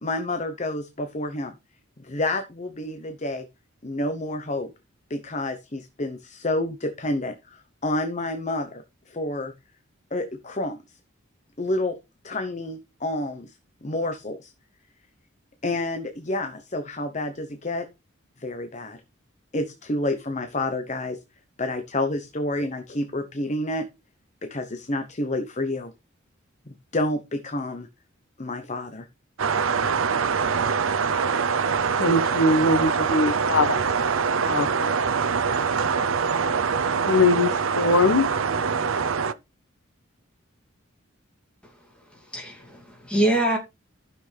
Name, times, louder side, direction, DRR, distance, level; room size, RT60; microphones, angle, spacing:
voice 1, 0.0-1.5 2.0-3.5 3.8-4.7 5.1-9.5 10.1-11.0 11.6-12.0 12.2-13.6 13.8-14.5 15.6-17.9 18.4-19.0 19.5-21.2 21.6-23.9 24.4-25.9 26.9-27.9 28.4-29.1, left 1 dB, 35° left, 0.9 m, -29 dB
sound 1, 29.4-39.3, right 6 dB, 85° right, 0.7 m, -24 dB
voice 2, 32.0-33.8 34.4-35.0 37.1-37.5 37.8-38.3, left 2 dB, 85° left, 1.2 m, -21 dB
voice 3, 42.3-43.6, right 1 dB, 5° left, 2.6 m, -24 dB
14.5 x 6.2 x 3.3 m
head